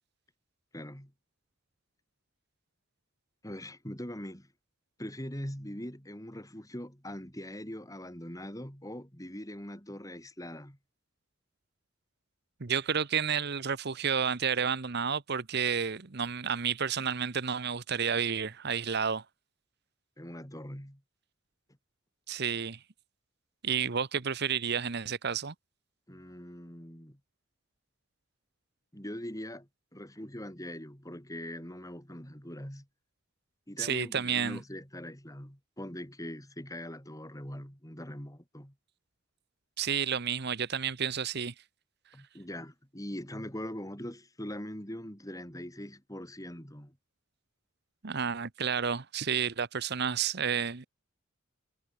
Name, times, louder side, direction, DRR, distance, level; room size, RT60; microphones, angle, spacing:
voice 1, 0.7-1.1 3.4-4.5 5.0-10.8 20.2-21.0 26.1-27.2 28.9-32.9 33.7-38.7 42.1-47.0, equal, 15° left, 6.2 m, -42 dB
voice 2, 12.6-19.2 22.3-22.8 23.6-25.5 33.8-34.6 39.8-41.5 48.0-50.9, right 7 dB, 55° right, 1.0 m, -31 dB
head